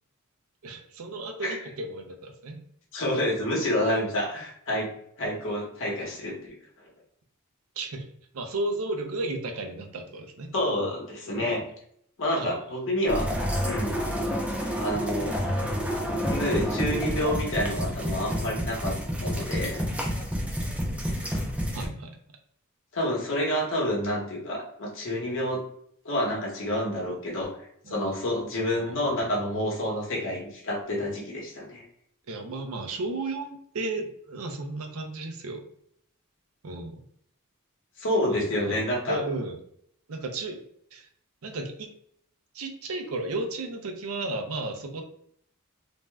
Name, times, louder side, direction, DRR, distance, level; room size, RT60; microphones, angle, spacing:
voice 1, 0.6-2.6 3.9-4.0 7.8-8.1 8.3-10.5 11.4-11.6 12.4-12.6 21.7-22.2 27.8-28.2 28.7-29.2 32.3-35.6 36.6-37.0 38.3-38.8 39.1-39.6 40.1-40.6 40.9-41.1 41.4-41.9 42.5-45.0, right 2 dB, 75° right, 4 dB, 0.5 m, -34 dB
voice 2, 2.9-4.9 5.2-6.6 10.5-11.6 12.2-13.3 13.6-14.0 14.8-15.4 16.3-19.8 22.9-25.6 26.0-27.5 27.9-31.8 38.0-39.2, left 1 dB, 60° left, -2 dB, 1.0 m, -28 dB
sound 1, 13.1-21.9, equal, 5° right, 0.5 m, -29 dB
2.6 x 2.2 x 3.2 m, 0.69 s
head